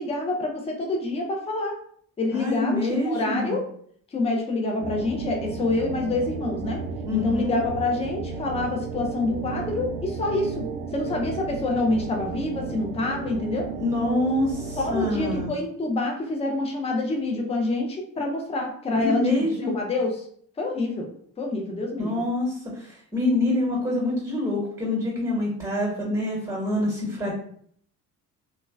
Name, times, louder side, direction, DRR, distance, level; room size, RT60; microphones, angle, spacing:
voice 1, 0.0-1.8 2.2-3.6 4.1-6.8 7.1-10.7 10.9-13.7 14.8-20.3 20.6-21.1 21.4-22.3, left 2 dB, 15° left, 2 dB, 0.5 m, -27 dB
voice 2, 2.3-3.6 7.0-7.5 13.8-15.5 18.9-19.7 22.0-27.3, left 1 dB, 10° right, -3 dB, 1.1 m, -26 dB
sound 1, 4.8-15.4, right 5 dB, 55° right, 0.5 m, -34 dB
2.9 x 2.3 x 2.2 m, 0.62 s
figure-of-eight pair, 45°, 45 cm